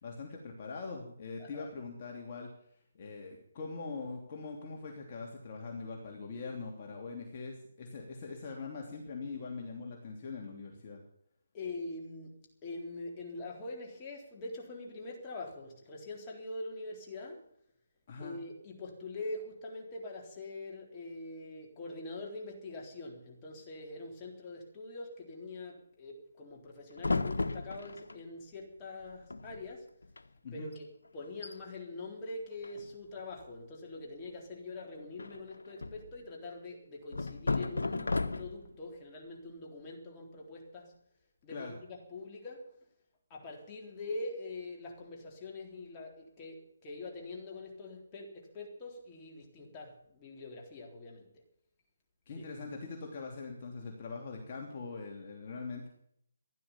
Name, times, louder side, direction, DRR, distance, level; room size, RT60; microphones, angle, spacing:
voice 1, 0.0-2.5 2.9-11.0 18.1-18.4 30.4-30.7 41.5-41.8 52.3-55.9, left 4 dB, 35° left, 0 dB, 3.0 m, -42 dB
voice 2, 11.5-12.3 12.6-17.4 18.2-29.9 30.5-30.9 31.1-40.9 41.4-42.7 43.3-51.3 52.4-52.5, left 2 dB, 20° left, -1 dB, 3.9 m, -44 dB
sound 1, 27.0-28.2 29.0-29.1 29.3-29.7 30.0-30.2 30.7-30.8 31.2-31.6 32.6-33.2 35.2-36.1 37.1-38.8, left 3 dB, 90° left, 1.2 m, -34 dB
15.5 x 11.0 x 7.3 m, 0.69 s
hypercardioid pair, 160°, 0 cm